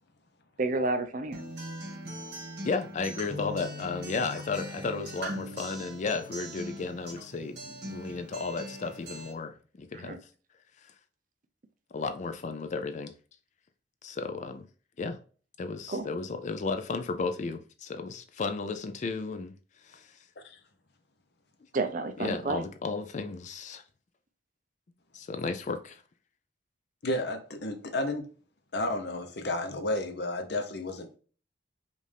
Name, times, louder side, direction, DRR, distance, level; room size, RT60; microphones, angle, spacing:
voice 1, 0.6-1.4 10.0-10.2 15.9-16.1 21.7-22.6, right 3 dB, 45° right, 0.5 m, -30 dB
Acoustic guitar, 1.3-9.3, equal, 60° right, 1.8 m, -40 dB
voice 2, 2.6-10.2 11.9-13.1 14.0-14.6 15.0-15.2 15.6-19.5 19.8-20.2 22.2-23.8 25.1-26.0, left 4 dB, 40° left, 0.4 m, -34 dB
voice 3, 27.0-28.3 28.7-31.2, left 1 dB, 65° left, 0.8 m, -32 dB
5.2 x 2.6 x 3.3 m
head